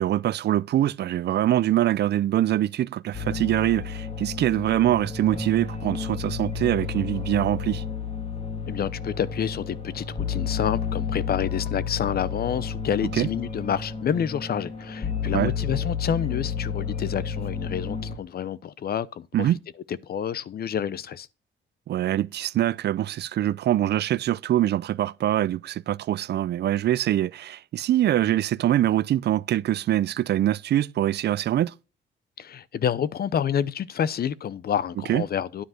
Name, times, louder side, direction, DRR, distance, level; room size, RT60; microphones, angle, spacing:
voice 1, 0.0-7.8 13.1-13.3 15.3-15.5 19.3-19.6 21.9-31.7 35.1-35.2, right 13 dB, 60° right, 0.5 m, -24 dB
sound 1, 3.1-18.2, left 6 dB, 30° left, 2.2 m, -31 dB
voice 2, 8.7-19.5 19.9-21.3 32.4-35.6, left 8 dB, 50° left, 0.7 m, -28 dB
10.0 x 5.1 x 5.8 m
cardioid pair, 90°, 20 cm